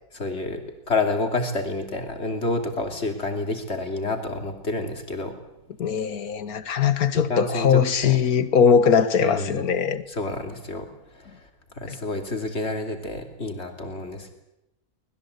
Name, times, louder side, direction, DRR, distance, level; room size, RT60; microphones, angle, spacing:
voice 1, 0.1-5.3 7.1-8.2 9.2-9.8 10.1-10.9 11.1-14.3, left 2 dB, 45° left, 3.4 m, -29 dB
voice 2, 5.8-10.0 11.9-12.0, left 7 dB, 75° left, 1.8 m, -21 dB
24.5 x 20.5 x 8.3 m
omnidirectional pair, 1.6 m